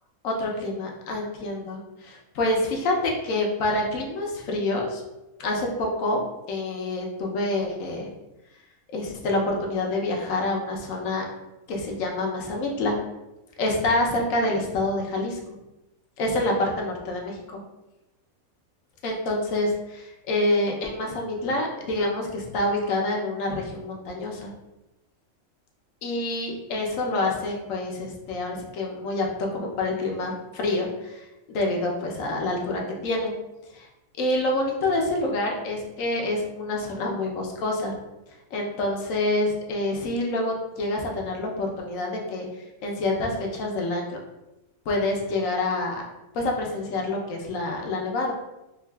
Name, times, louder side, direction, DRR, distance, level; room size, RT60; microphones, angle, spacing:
voice 1, 0.2-5.0 5.4-8.1 8.9-11.2 11.7-12.9 13.6-15.4 16.2-17.4 19.0-24.5 26.0-33.3 33.7-33.9 34.2-37.9 38.5-42.5 42.8-44.2 44.9-46.0 46.3-48.3, left 2 dB, 70° left, 0 dB, 1.0 m, -27 dB
4.6 x 2.4 x 2.2 m, 0.98 s
omnidirectional pair, 1.5 m